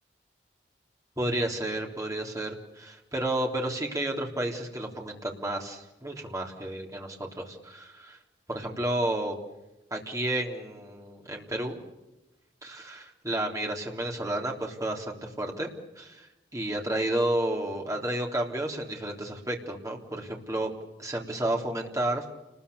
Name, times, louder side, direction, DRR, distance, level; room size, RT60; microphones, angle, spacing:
voice 1, 1.2-8.2 8.5-9.3 9.9-11.8 12.6-15.7 16.0-20.7 21.0-22.2, right 1 dB, 20° right, 1 dB, 3.6 m, -31 dB
29.0 x 21.0 x 7.0 m, 0.99 s
head